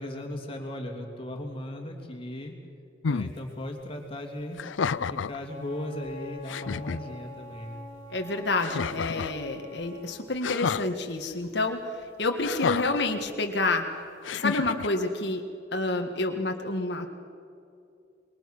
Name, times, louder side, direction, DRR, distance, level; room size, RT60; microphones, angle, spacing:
voice 1, 0.0-2.5 3.0-4.6 5.1-7.8, left 1 dB, 30° left, 2 dB, 3.0 m, -37 dB
sound 1, 3.0-3.3 4.5-5.4 6.1-6.2 6.5-7.0 8.6-9.4 10.4-10.9 12.4-13.1 14.2-14.9, left 5 dB, 85° left, 0.5 m, -30 dB
Wind instrument woodwind instrument, 5.5-10.1, left 4 dB, 40° right, 5.3 m, -44 dB
voice 2, 8.1-11.9 12.2-13.9 14.3-15.4 15.7-17.1, left 2 dB, 60° left, 4 dB, 1.7 m, -28 dB
27.0 x 23.0 x 6.1 m, 2.6 s
head